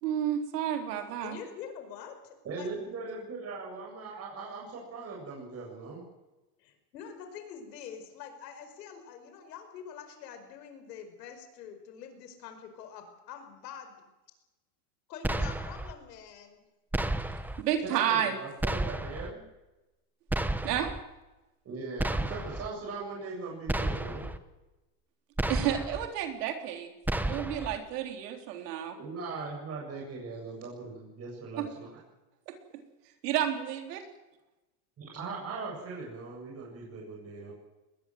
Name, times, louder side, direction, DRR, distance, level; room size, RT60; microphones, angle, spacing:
voice 1, 0.0-1.4 17.6-18.4 20.6-20.9 25.5-26.9 27.2-29.0 31.6-31.7 32.5-32.8 33.2-34.0, right 10 dB, 80° right, 5 dB, 4.0 m, -31 dB
voice 2, 1.2-2.7 6.6-14.1 15.1-16.7, left 7 dB, 90° left, 7 dB, 5.2 m, -45 dB
voice 3, 2.4-6.0 17.8-19.4 21.6-24.3 29.0-31.9 35.0-37.5, right 3 dB, 30° right, -2 dB, 7.3 m, -39 dB
sound 1, 15.2-15.9 16.9-17.6 18.6-19.3 20.3-21.0 22.0-22.7 23.7-24.4 25.4-26.1 27.1-27.8, right 1 dB, 5° right, 1.0 m, -31 dB
21.0 x 20.5 x 7.8 m, 1.0 s
supercardioid pair, 125°, 47 cm